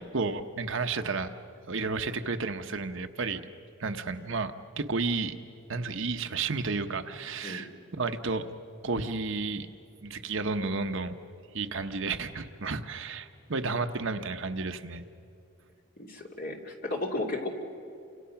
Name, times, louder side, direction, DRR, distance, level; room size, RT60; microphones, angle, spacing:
voice 1, 0.1-1.3 1.7-3.4 3.8-5.4 5.7-8.4 8.8-9.7 10.0-11.2 11.5-15.0, right 4 dB, 55° right, 7 dB, 0.9 m, -32 dB
voice 2, 16.0-17.5, left 2 dB, 40° left, 1 dB, 2.7 m, -34 dB
29.0 x 26.5 x 5.8 m, 2.6 s
head